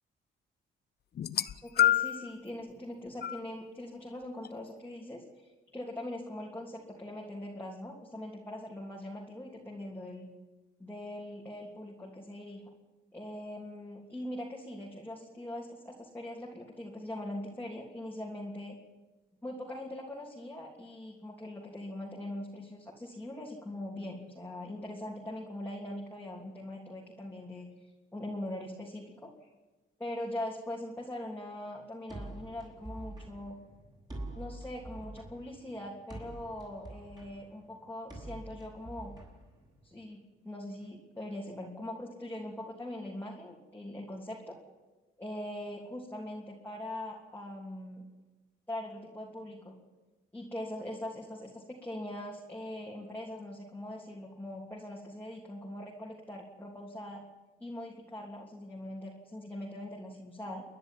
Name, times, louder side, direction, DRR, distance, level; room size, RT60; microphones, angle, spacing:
sound 1, 1.2-2.3 3.2-3.4 4.4-4.5, left 12 dB, 55° left, 0.8 m, -27 dB
voice 1, 1.6-10.3 10.8-12.6 13.1-18.8 19.4-27.7 28.1-29.3 30.0-33.6 34.3-39.2 39.8-44.6 45.2-48.1 48.7-49.7 50.3-57.2 57.6-60.6, left 1 dB, 10° left, -2 dB, 3.2 m, -41 dB
sound 2, 32.1-40.0, right 1 dB, 20° right, 7.2 m, -46 dB
29.0 x 11.0 x 9.1 m, 1.2 s
cardioid pair, 90°, 20 cm